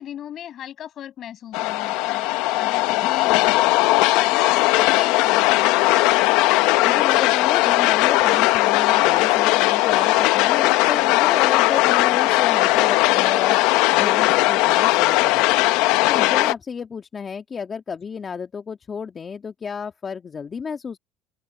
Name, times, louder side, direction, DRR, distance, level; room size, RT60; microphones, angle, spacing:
voice 1, 0.0-3.3 4.0-5.8, left 10 dB, 55° left, 6.7 m, -37 dB
sound 1, 1.5-16.5, left 19 dB, 75° left, 1.0 m, -18 dB
voice 2, 6.8-13.6 13.9-15.7 16.1-21.0, left 6 dB, 35° left, 1.9 m, -32 dB
open air
supercardioid pair, 80°, 0 cm